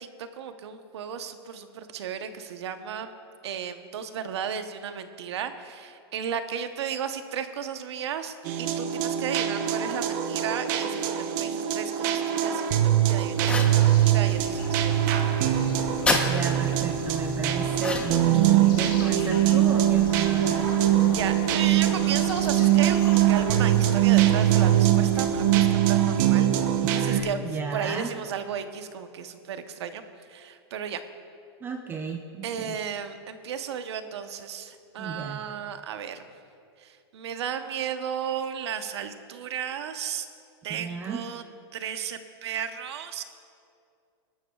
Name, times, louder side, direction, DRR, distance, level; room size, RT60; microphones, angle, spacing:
voice 1, 0.0-3.1 3.4-15.1 18.3-18.6 21.0-26.5 26.9-27.4 27.7-30.0 30.3-31.0 32.4-36.2 36.8-40.3 40.6-41.4 41.7-43.2, right 8 dB, 75° right, 8 dB, 1.0 m, -34 dB
sound 1, 8.5-27.2, right 11 dB, 45° right, 0.9 m, -22 dB
sound 2, 13.4-25.7, left 6 dB, 55° left, 0.9 m, -40 dB
sound 3, 13.4-13.8 16.1-16.3 17.8-18.3, left 3 dB, 10° left, 0.9 m, -26 dB
voice 2, 16.2-20.7 26.8-28.1 31.6-32.8 35.0-35.4 40.7-41.2, right 5 dB, 15° right, 5 dB, 0.5 m, -34 dB
20.5 x 12.5 x 2.4 m, 2.4 s
supercardioid pair, 150°, 14 cm